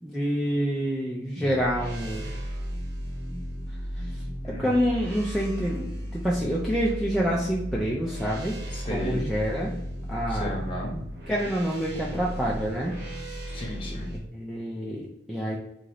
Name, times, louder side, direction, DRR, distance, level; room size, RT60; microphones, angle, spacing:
voice 1, 0.0-2.3 4.0-8.6 8.9-9.7 10.1-10.5 11.3-13.0 14.1-15.6, equal, ahead, -5 dB, 0.5 m, -27 dB
sound 1, 1.4-14.2, equal, 60° right, 1.1 m, -35 dB
voice 2, 8.7-9.2 10.3-11.0 13.5-14.1, left 1 dB, 30° left, -2 dB, 1.1 m, -34 dB
3.8 x 2.7 x 4.7 m, 0.79 s
head